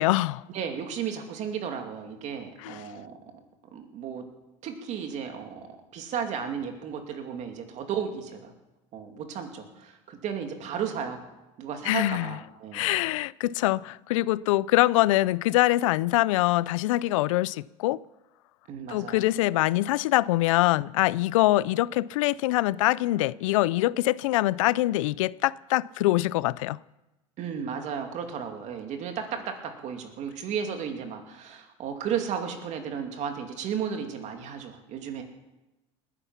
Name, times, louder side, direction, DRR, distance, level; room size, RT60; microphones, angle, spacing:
voice 1, 0.0-0.4 2.6-2.8 11.8-12.4 12.7-18.0 18.9-26.8, left 17 dB, 85° left, 0.4 m, -24 dB
voice 2, 0.5-3.2 3.7-4.2 4.6-5.7 5.9-8.5 8.9-11.2 11.6-12.9 18.7-19.3 27.4-35.2, right 7 dB, 45° right, 2.6 m, -34 dB
20.0 x 10.0 x 5.8 m
supercardioid pair, 120°, 16 cm